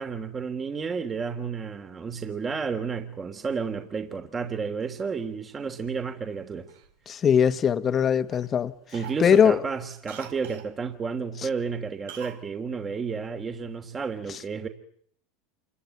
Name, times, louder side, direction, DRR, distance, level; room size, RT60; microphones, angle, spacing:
voice 1, 0.0-6.7 8.9-14.7, right 5 dB, 25° right, 3.1 m, -31 dB
Cough, 6.7-7.9 8.3-8.5 8.9-10.7 12.1-12.4 12.7-12.8, right 9 dB, 80° right, 3.8 m, -45 dB
voice 2, 7.1-8.7 9.2-9.6, left 8 dB, 35° left, 1.9 m, -20 dB
28.0 x 23.5 x 9.1 m
hypercardioid pair, 100°, 0 cm